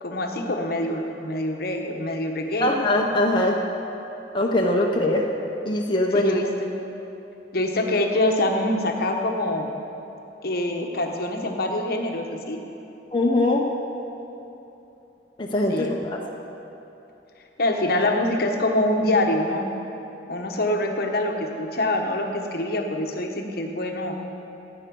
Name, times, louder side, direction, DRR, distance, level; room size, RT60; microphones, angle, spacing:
voice 1, 0.0-2.7 6.1-6.8 7.5-9.7 10.4-12.6 15.7-16.2 17.6-19.6 20.3-24.2, left 1 dB, 55° left, 2 dB, 1.1 m, -25 dB
voice 2, 2.6-3.6 4.3-5.2 5.7-6.3 13.1-13.6 15.4-16.2, left 1 dB, 25° left, -2 dB, 0.8 m, -22 dB
14.5 x 8.8 x 5.4 m, 2.9 s
head